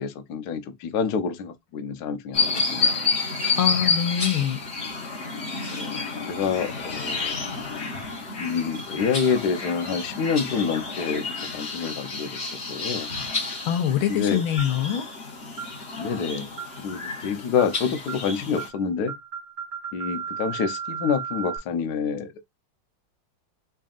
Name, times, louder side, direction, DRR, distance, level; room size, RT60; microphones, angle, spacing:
voice 1, 0.0-3.1 5.7-7.4 8.4-11.2 11.5-13.1 14.1-14.4 16.0-16.5 16.8-19.1 19.9-22.4, left 6 dB, 65° left, 1.1 m, -27 dB
sound 1, 2.3-18.7, left 4 dB, 35° left, 1.3 m, -30 dB
voice 2, 3.6-4.6 13.7-15.0, left 10 dB, 85° left, 1.6 m, -24 dB
sound 2, 14.6-14.9 15.6-15.8 16.6-16.9 17.6-17.8 18.1-18.3 18.6-18.8 19.1-21.6, right 7 dB, 45° right, 1.5 m, -34 dB
4.1 x 3.3 x 2.4 m
omnidirectional pair, 2.2 m